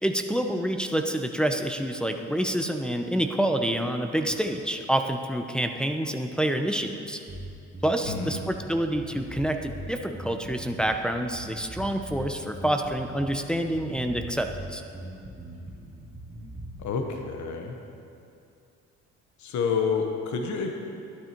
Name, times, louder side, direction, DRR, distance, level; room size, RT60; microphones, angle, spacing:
voice 1, 0.0-7.2 7.8-14.8, right 1 dB, 5° left, 4 dB, 0.7 m, -27 dB
Bass guitar, 7.3-16.9, right 1 dB, 25° right, 2.5 m, -41 dB
voice 2, 8.1-8.4 16.8-17.8 19.4-20.7, left 5 dB, 70° left, 3 dB, 1.2 m, -28 dB
11.5 x 10.0 x 4.5 m, 2.6 s
cardioid pair, 90°, 30 cm